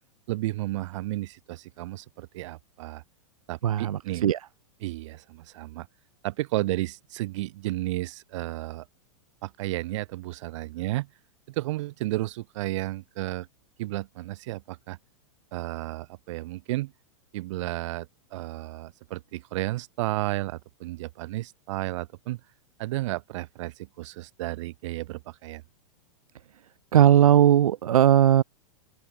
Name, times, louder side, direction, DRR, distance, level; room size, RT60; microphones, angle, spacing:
voice 1, 0.3-3.0 3.5-4.3 4.8-5.9 6.2-8.8 9.4-11.1 11.5-13.5 13.8-15.0 15.5-16.9 17.3-22.4 22.8-25.6, right 18 dB, 60° right, 2.6 m, -32 dB
voice 2, 3.6-4.4 26.9-28.4, right 10 dB, 85° right, 1.0 m, -18 dB
open air
hypercardioid pair, 135°, 18 cm